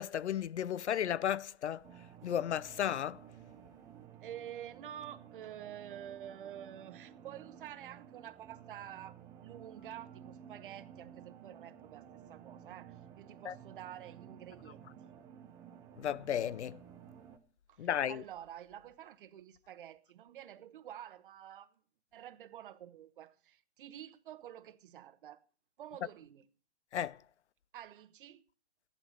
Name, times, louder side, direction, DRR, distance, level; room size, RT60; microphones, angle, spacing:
voice 1, 0.0-1.8 2.2-3.2 13.4-13.5 16.0-16.8 17.8-18.2 26.9-27.2, left 10 dB, 70° left, 0.6 m, -34 dB
sound 1, 1.8-17.4, right 9 dB, 10° right, 0.5 m, -54 dB
voice 2, 4.2-9.2 9.4-14.8 17.7-21.7 22.1-25.4 25.8-26.4 27.7-28.4, right 11 dB, 45° right, 1.1 m, -49 dB
14.5 x 11.0 x 4.9 m
hypercardioid pair, 140°, 36 cm